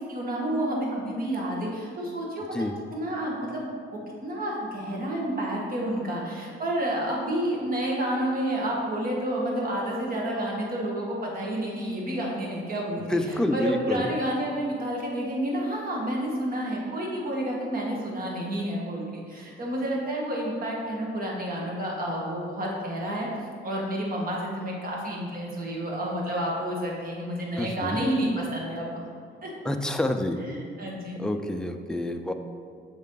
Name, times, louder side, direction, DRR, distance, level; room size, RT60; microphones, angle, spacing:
voice 1, 0.0-2.6 2.9-3.7 4.2-23.3 23.6-29.0 29.4-29.5 30.4-31.2, right 1 dB, 45° right, -2 dB, 1.8 m, -30 dB
voice 2, 13.0-14.1 27.6-28.1 29.6-30.4 31.2-32.3, left 1 dB, 5° left, 5 dB, 0.5 m, -28 dB
7.1 x 5.5 x 3.9 m, 2.3 s
cardioid pair, 90°, 20 cm